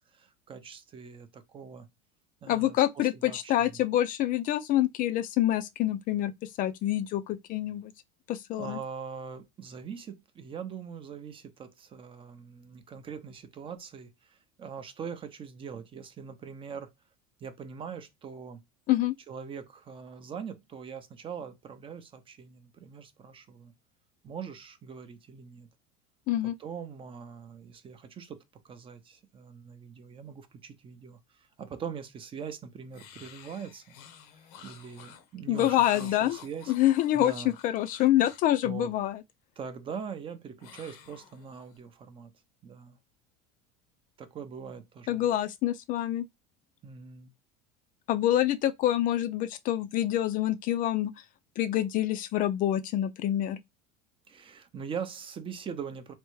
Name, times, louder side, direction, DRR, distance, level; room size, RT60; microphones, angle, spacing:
voice 1, 0.1-1.9 2.4-3.8 8.6-16.9 17.4-18.6 19.3-23.7 24.2-25.7 26.6-34.0 34.6-36.7 37.1-37.5 38.6-38.9 39.6-42.3 42.6-43.0 44.2-45.3 46.8-47.3 54.3-56.1, right 6 dB, 25° right, 0.5 m, -42 dB
voice 2, 2.5-6.3 6.6-7.9 8.3-8.8 18.9-19.1 26.3-26.5 35.5-36.4 36.7-37.3 37.6-39.2 45.1-46.2 48.1-51.1 51.6-53.6, left 13 dB, 45° left, 0.4 m, -26 dB
sound 1, 32.9-38.6 40.6-41.8, left 8 dB, 80° left, 0.7 m, -50 dB
3.4 x 2.1 x 3.0 m
supercardioid pair, 115°, 19 cm